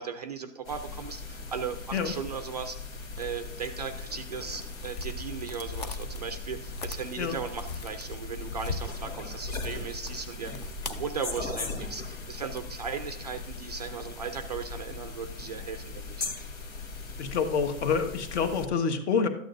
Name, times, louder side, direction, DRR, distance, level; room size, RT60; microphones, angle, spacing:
voice 1, 0.0-16.3, right 6 dB, 35° right, 8 dB, 0.4 m, -37 dB
sound 1, 0.6-18.7, left 3 dB, 85° left, 2.3 m, -39 dB
sound 2, 3.2-12.6, left 3 dB, 35° left, 0.5 m, -41 dB
voice 2, 17.2-19.3, left 6 dB, 55° left, 7 dB, 1.4 m, -27 dB
13.0 x 8.8 x 2.6 m, 0.70 s
hypercardioid pair, 165°, 39 cm